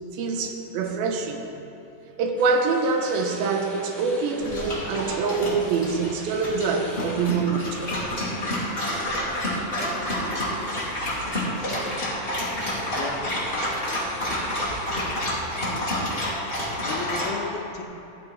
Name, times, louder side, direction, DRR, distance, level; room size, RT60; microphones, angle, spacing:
voice 1, 0.1-1.5 2.2-7.8, right 4 dB, 75° right, 3 dB, 2.4 m, -25 dB
sound 1, 2.4-17.1, equal, ahead, 0.6 m, -43 dB
Dog, 4.4-17.3, left 1 dB, 25° left, 1.3 m, -29 dB
voice 2, 12.9-13.2 16.8-17.8, left 5 dB, 75° left, 2 dB, 2.4 m, -34 dB
14.5 x 9.2 x 3.5 m, 3.0 s
omnidirectional pair, 4.8 m